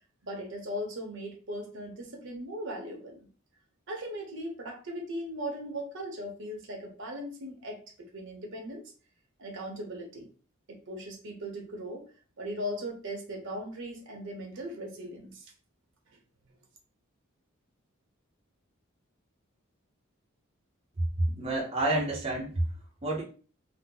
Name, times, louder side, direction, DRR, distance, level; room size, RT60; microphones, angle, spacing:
voice 1, 0.2-3.3 3.9-7.8 8.1-8.8 9.4-10.3 10.7-12.0 12.4-15.5, equal, 60° right, 2 dB, 0.9 m, -38 dB
voice 2, 21.2-22.6 23.0-23.2, right 1 dB, 30° right, -3 dB, 0.6 m, -28 dB
2.7 x 2.0 x 3.7 m, 0.38 s
head